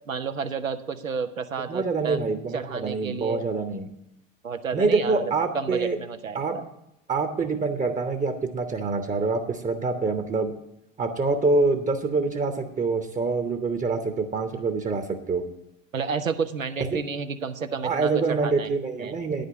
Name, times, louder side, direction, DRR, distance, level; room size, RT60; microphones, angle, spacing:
voice 1, 0.1-2.2 2.5-3.5 4.4-6.6 15.9-18.7 19.0-19.1, right 5 dB, 90° right, 8 dB, 0.6 m, -31 dB
voice 2, 1.7-3.9 4.7-6.0 6.3-6.6 7.1-10.5 11.0-15.4 16.9-17.0 17.8-19.5, right 3 dB, 20° right, 7 dB, 0.9 m, -25 dB
9.8 x 5.1 x 8.1 m, 0.82 s
figure-of-eight pair, 65°, 39 cm